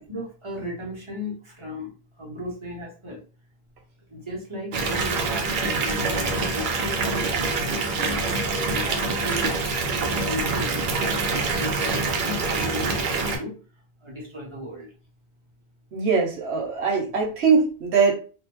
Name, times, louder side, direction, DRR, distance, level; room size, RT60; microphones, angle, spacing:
voice 1, 0.1-1.9 2.2-3.2 4.1-7.0 7.4-8.2 8.7-9.5 9.9-10.8 11.3-13.6 14.0-14.9, left 1 dB, 30° right, -3 dB, 0.9 m, -36 dB
Water tap faucet / Bathtub (filling or washing) / Fill (with liquid), 4.7-13.4, right 3 dB, 60° right, 0.6 m, -25 dB
voice 2, 15.9-18.1, right 5 dB, 85° right, 0 dB, 1.0 m, -21 dB
2.7 x 2.0 x 2.9 m, 0.37 s
omnidirectional pair, 1.1 m